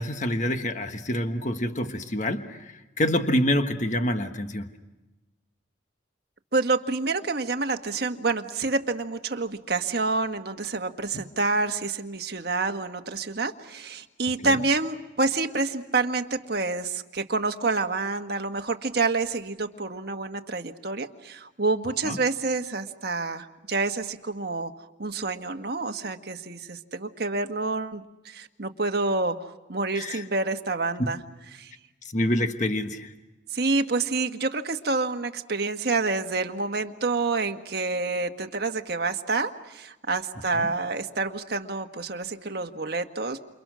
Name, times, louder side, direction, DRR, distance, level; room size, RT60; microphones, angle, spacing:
voice 1, 0.0-4.7 14.4-14.6 22.0-22.2 29.9-30.2 31.0-31.1 32.1-33.1 40.5-40.7, left 1 dB, 40° left, 7 dB, 1.5 m, -27 dB
voice 2, 6.5-24.7 25.0-31.2 31.5-31.7 33.5-43.4, right 3 dB, 55° right, 5 dB, 1.6 m, -28 dB
29.0 x 28.5 x 6.3 m, 1.1 s
head